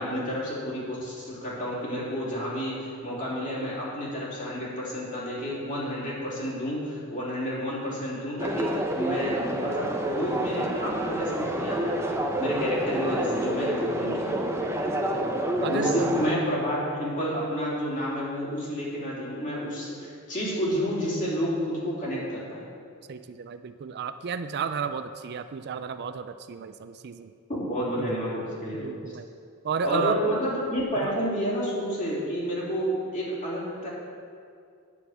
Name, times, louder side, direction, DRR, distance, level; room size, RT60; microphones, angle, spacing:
voice 1, 0.0-11.9 12.4-14.4 15.7-22.6 27.5-28.9 29.8-33.9, equal, 35° left, -6 dB, 3.4 m, -30 dB
sound 1, 8.4-16.3, right 1 dB, 10° right, 0.9 m, -28 dB
voice 2, 15.6-16.1 23.1-27.3 28.0-28.2 28.7-29.3 29.6-30.2 31.0-31.1, right 6 dB, 50° right, 10 dB, 0.4 m, -32 dB
9.9 x 7.1 x 8.0 m, 2.4 s
head